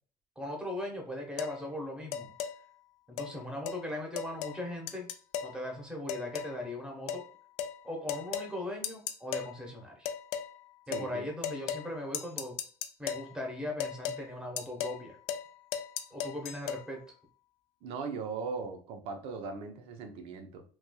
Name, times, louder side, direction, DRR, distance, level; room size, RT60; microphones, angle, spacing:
voice 1, 0.4-2.3 3.1-5.1 5.4-7.2 7.8-10.1 10.9-12.5 13.0-15.2 16.1-17.0, left 1 dB, 5° right, 1 dB, 1.0 m, -39 dB
sound 1, 1.4-1.6 2.1-2.5 3.2-3.3 3.7-3.8 4.2-4.6 4.9-5.5 6.1-6.6 7.1-7.2 7.6-7.8 8.1-8.5 8.8-9.5 10.0-10.5 10.9-11.1 11.4-11.9 12.1-13.3 13.8-14.2 14.6-15.0 15.3-15.5 15.7-16.8, left 9 dB, 70° left, 0.4 m, -36 dB
voice 2, 10.9-11.3 17.8-20.6, right 4 dB, 60° right, 6 dB, 0.7 m, -39 dB
3.1 x 3.0 x 2.2 m, 0.43 s
cardioid pair, 130°, 11 cm